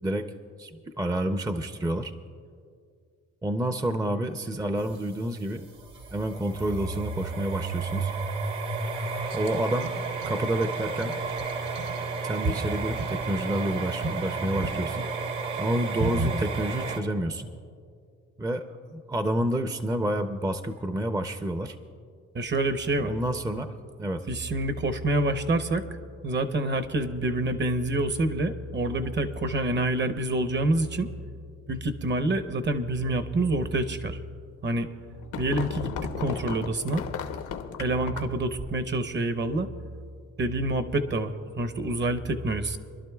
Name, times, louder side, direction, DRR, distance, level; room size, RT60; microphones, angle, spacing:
voice 1, 0.0-0.3 0.6-2.1 3.4-5.7 6.1-8.1 9.3-9.9 10.3-11.1 12.2-15.1 15.6-17.5 18.4-21.8 23.0-24.3, right 1 dB, 10° right, 8 dB, 0.5 m, -29 dB
sound 1, 4.8-17.0, right 3 dB, 80° right, 1.5 m, -31 dB
voice 2, 22.3-23.1 24.3-25.9 26.2-31.1 31.7-34.2 34.6-34.9 35.4-35.9 36.2-37.0 37.8-39.7 40.4-42.8, right 2 dB, 35° right, 10 dB, 0.8 m, -27 dB
sound 2, 34.9-38.4, left 8 dB, 85° left, 0.9 m, -35 dB
26.5 x 11.5 x 2.3 m, 2.3 s
cardioid pair, 90°, 30 cm